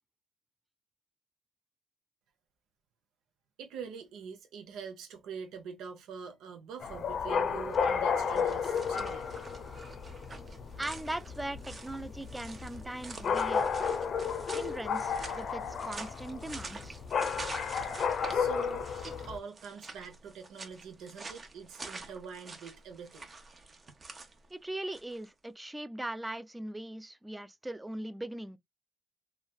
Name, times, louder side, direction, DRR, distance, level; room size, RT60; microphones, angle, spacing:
voice 1, 3.6-9.3 18.3-23.3, right 6 dB, 85° right, 0.7 m, -44 dB
sound 1, 6.8-19.4, left 6 dB, 60° left, 0.6 m, -33 dB
sound 2, 7.6-25.3, right 3 dB, 35° right, 0.7 m, -47 dB
voice 2, 10.8-13.7 14.5-17.0 24.5-28.6, right 1 dB, 10° right, 0.3 m, -40 dB
3.2 x 2.3 x 2.2 m
cardioid pair, 90°, 0 cm